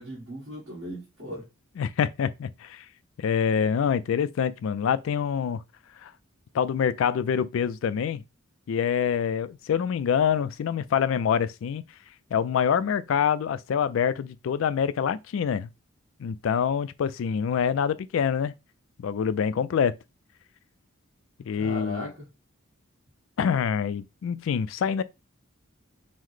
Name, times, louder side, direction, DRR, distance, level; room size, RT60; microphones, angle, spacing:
voice 1, 0.0-1.5 21.6-22.2, left 1 dB, 60° right, 1.5 m, -37 dB
voice 2, 1.8-2.8 3.2-5.6 6.0-6.1 6.5-8.2 8.7-11.8 12.3-15.7 16.2-18.5 19.0-20.0 21.4-22.1 23.4-25.0, left 7 dB, 65° left, 0.3 m, -26 dB
5.6 x 2.1 x 3.1 m
head